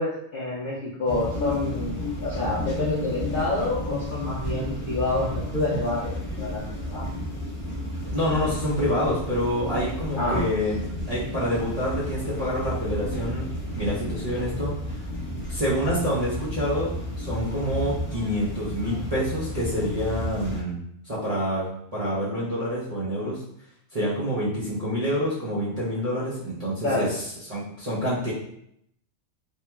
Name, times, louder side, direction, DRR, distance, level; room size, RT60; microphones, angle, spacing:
voice 1, 0.0-7.0 10.2-10.4 26.8-27.1, left 2 dB, 55° left, -7 dB, 0.6 m, -28 dB
sound 1, 1.1-20.6, left 1 dB, 10° left, 0.6 m, -32 dB
voice 2, 8.1-10.8 11.1-14.7 15.5-20.8 21.0-21.7 21.9-23.4 23.9-27.2 27.5-28.3, equal, 40° right, -9 dB, 0.5 m, -27 dB
3.0 x 2.7 x 2.2 m, 0.73 s
omnidirectional pair, 1.5 m